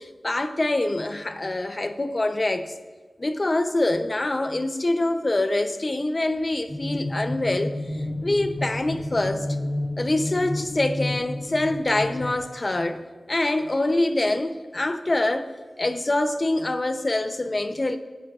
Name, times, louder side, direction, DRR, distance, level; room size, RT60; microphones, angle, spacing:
voice 1, 0.0-2.7 3.2-9.5 10.0-13.0 13.3-15.5 15.8-18.0, left 2 dB, 30° left, 0.7 m, -25 dB
sound 1, 6.7-12.4, left 1 dB, 90° left, 2.0 m, -30 dB
21.5 x 9.4 x 2.5 m
wide cardioid pair, 110°, 0 cm